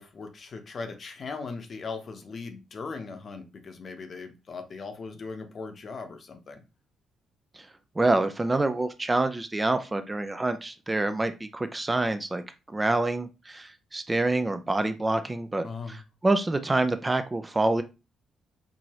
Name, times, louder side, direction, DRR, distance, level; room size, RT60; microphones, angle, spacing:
voice 1, 0.0-6.6 15.6-16.0, left 4 dB, 45° left, 0.8 m, -39 dB
voice 2, 8.0-12.4 12.7-17.8, right 2 dB, 20° right, 0.4 m, -27 dB
4.6 x 2.6 x 3.0 m
cardioid pair, 90°, 0 cm